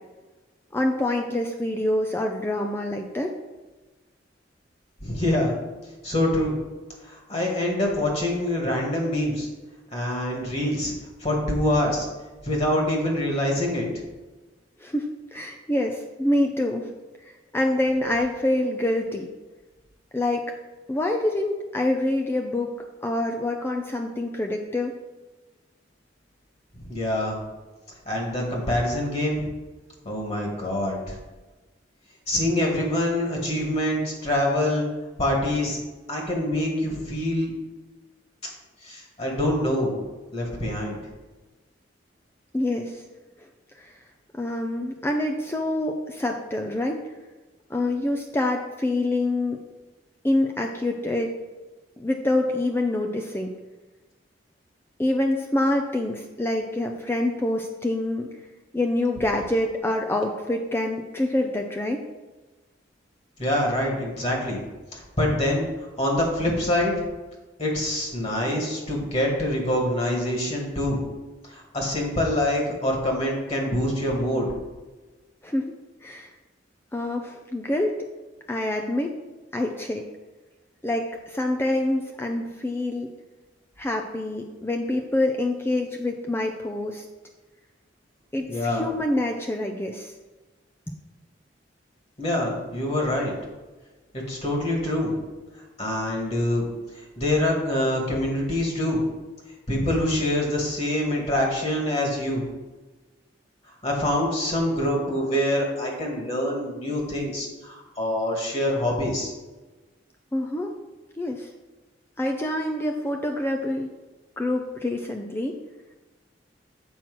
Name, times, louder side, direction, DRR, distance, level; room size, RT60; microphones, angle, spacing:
voice 1, 0.7-3.3 14.8-16.9 17.5-19.3 20.1-20.4 20.9-22.7 23.0-24.9 42.5-43.0 43.8-43.9 44.4-47.0 47.7-49.6 50.2-51.3 52.0-53.5 55.0-58.3 58.7-62.0 75.4-75.7 76.0-76.3 76.9-77.9 78.5-79.1 79.5-80.0 80.8-83.1 83.8-87.0 88.3-90.1 110.3-110.7 111.2-111.5 112.2-113.9 114.4-115.5, left 1 dB, 15° left, 2 dB, 0.4 m, -26 dB
voice 2, 5.0-5.5 6.0-6.5 7.0-9.5 9.9-10.9 11.2-12.1 12.4-13.8 26.7-27.4 28.1-29.5 30.0-31.2 32.3-34.9 35.2-35.8 36.1-37.5 38.8-40.0 40.3-41.0 63.4-64.6 64.9-65.7 66.0-66.9 67.6-71.0 71.5-74.5 88.4-88.9 92.2-93.3 94.3-95.1 95.8-96.6 96.9-99.0 99.7-102.4 103.8-109.3, left 1 dB, 35° left, -1 dB, 1.8 m, -25 dB
7.3 x 4.4 x 6.1 m, 1.2 s
head